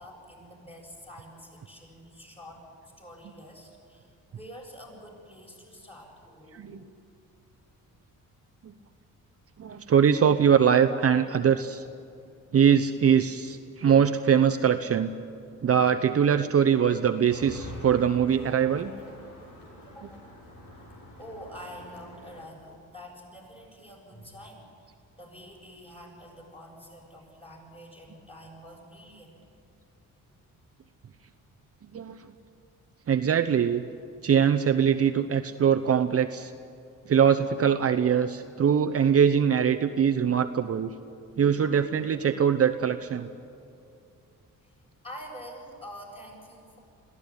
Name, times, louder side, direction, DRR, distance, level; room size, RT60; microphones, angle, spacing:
voice 1, 0.0-2.6 3.0-6.8 19.9-20.2 21.2-29.4 44.6-44.7 45.0-46.8, equal, 15° left, -1 dB, 7.5 m, -47 dB
voice 2, 9.6-11.8 12.5-15.1 15.6-18.9 31.9-32.2 33.1-33.8 34.2-36.5 37.1-40.9 41.4-43.3, right 8 dB, 45° right, 6 dB, 0.9 m, -22 dB
sound 1, 17.3-22.5, left 1 dB, 75° left, 6.4 m, -46 dB
22.0 x 15.5 x 9.9 m, 2.6 s
cardioid pair, 95°, 33 cm